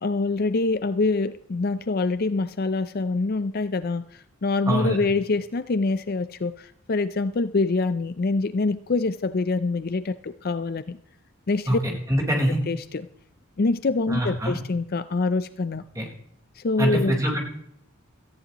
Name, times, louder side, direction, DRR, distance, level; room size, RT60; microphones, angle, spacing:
voice 1, 0.0-11.0 11.5-11.8 12.7-13.1 13.6-15.8 16.6-17.2, left 3 dB, 45° left, 13 dB, 0.5 m, -25 dB
voice 2, 4.7-5.0 11.7-12.6 14.1-14.6 15.9-16.1 16.8-17.4, equal, 15° right, -2 dB, 4.2 m, -24 dB
18.0 x 14.5 x 3.0 m, 0.72 s
head